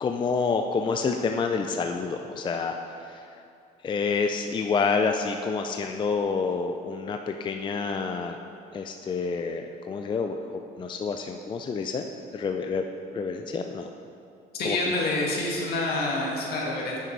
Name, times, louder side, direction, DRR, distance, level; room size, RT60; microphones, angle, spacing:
voice 1, 0.0-3.4 3.8-8.4 8.7-12.9 13.1-13.9 14.6-14.9, left 5 dB, 30° left, 5 dB, 0.4 m, -28 dB
voice 2, 14.5-17.0, left 2 dB, 65° left, -2 dB, 2.0 m, -27 dB
8.9 x 6.7 x 4.6 m, 2.5 s
cardioid pair, 110°, 17 cm